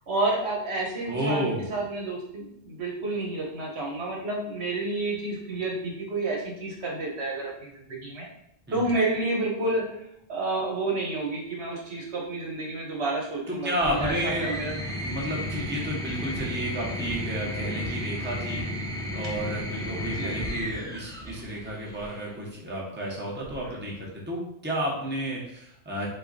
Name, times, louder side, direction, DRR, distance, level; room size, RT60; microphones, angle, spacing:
voice 1, 0.1-8.3 8.7-14.8 20.1-20.3, right 2 dB, 70° right, -1 dB, 1.3 m, -30 dB
voice 2, 1.1-1.7 8.7-8.9 13.5-14.6 15.0-18.6 19.1-26.1, equal, 10° right, -3 dB, 0.9 m, -31 dB
sound 1, 13.8-22.2 23.4-24.1, left 1 dB, 5° left, 0.4 m, -33 dB
5.5 x 2.3 x 4.0 m, 0.76 s
omnidirectional pair, 1.2 m